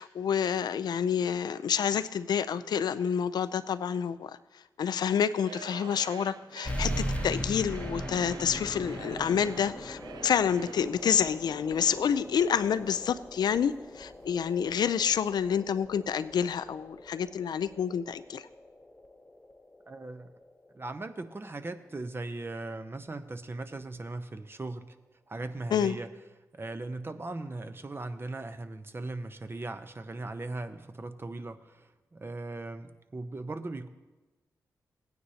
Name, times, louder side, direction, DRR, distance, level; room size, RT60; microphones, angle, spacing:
voice 1, 0.0-4.3 4.8-18.5 25.7-26.0, left 7 dB, 75° left, 13 dB, 0.5 m, -28 dB
Singing / Crowd, 5.3-11.0, right 7 dB, 80° right, 0.4 m, -47 dB
sound 1, 6.6-21.7, equal, 15° left, 0.9 m, -40 dB
sound 2, 8.5-15.2, right 2 dB, 60° right, 3.1 m, -52 dB
voice 2, 19.9-20.3 20.7-24.9 25.3-26.1 26.5-33.9, right 2 dB, 35° right, 9 dB, 0.8 m, -38 dB
16.5 x 9.5 x 2.9 m, 1.2 s
cardioid pair, 50°, 7 cm